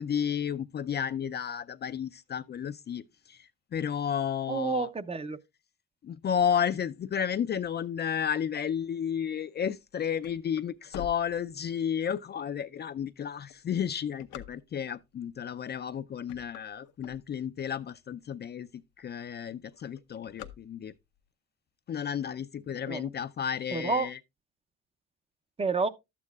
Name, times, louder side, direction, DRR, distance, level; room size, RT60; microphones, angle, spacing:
voice 1, 0.0-4.9 6.0-20.9 21.9-24.2, left 8 dB, 35° left, 0.4 m, -32 dB
voice 2, 4.5-5.4 22.9-23.1 23.7-24.1 25.6-25.9, right 4 dB, 20° right, 0.6 m, -29 dB
sound 1, 9.7-12.0 12.6-12.7 13.3-15.0 15.7-15.9 16.2-17.7 18.2-18.3 18.5-18.6 18.9-19.3 19.6-21.2, left 11 dB, 85° left, 0.8 m, -46 dB
11.5 x 8.4 x 2.3 m
cardioid pair, 85°, 29 cm